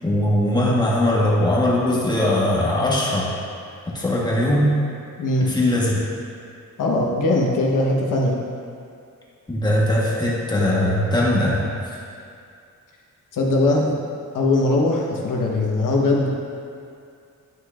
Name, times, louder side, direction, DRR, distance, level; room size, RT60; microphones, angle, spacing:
voice 1, 0.0-3.4 3.9-4.8 5.4-6.0 9.5-11.7, left 1 dB, 15° left, -5 dB, 1.2 m, -20 dB
voice 2, 6.8-8.4 13.3-13.9 14.3-16.3, left 2 dB, 85° left, -1 dB, 1.1 m, -20 dB
10.5 x 6.3 x 2.4 m, 2.4 s
wide cardioid pair, 175°, 31 cm